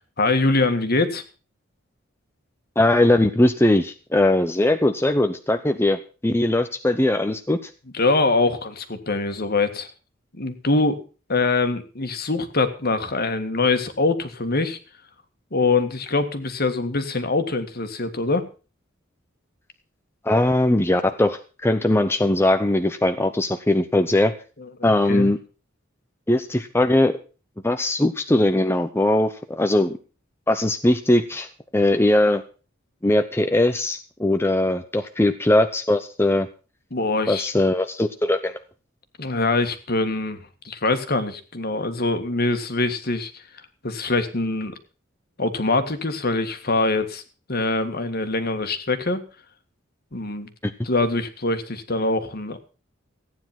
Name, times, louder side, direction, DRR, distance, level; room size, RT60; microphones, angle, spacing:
voice 1, 0.2-1.2 7.9-9.9 10.3-11.0 11.3-14.8 15.5-18.4 24.8-25.3 36.9-37.5 39.2-43.4 43.8-44.7 45.4-47.2 47.5-49.2 50.1-50.5 50.8-52.6, left 3 dB, 50° left, 8 dB, 1.8 m, -23 dB
voice 2, 2.8-7.6 20.2-24.3 24.8-25.4 26.3-27.2 27.6-30.0 30.5-31.5 31.7-32.4 33.0-36.5 37.3-38.6 50.6-50.7, left 1 dB, 10° left, 7 dB, 0.7 m, -20 dB
15.0 x 9.6 x 5.9 m, 0.35 s
head